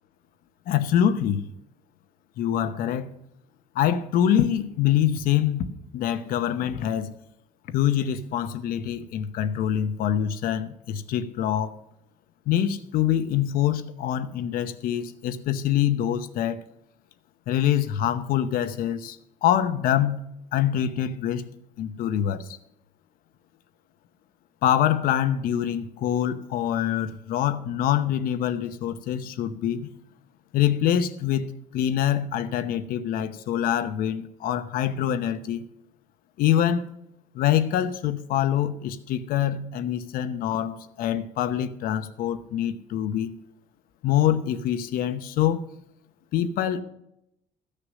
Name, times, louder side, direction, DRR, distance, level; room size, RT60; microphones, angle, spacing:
voice 1, 0.7-1.5 2.4-3.1 3.7-5.7 5.9-7.1 7.7-11.8 12.5-16.6 17.5-20.3 20.5-21.5 21.8-22.6 24.6-29.9 30.5-31.5 31.7-35.6 36.4-36.8 37.3-43.3 44.0-45.6 46.3-46.8, left 10 dB, 70° left, 11 dB, 0.9 m, -25 dB
14.0 x 6.7 x 6.2 m, 0.80 s
cardioid pair, 130°, 15 cm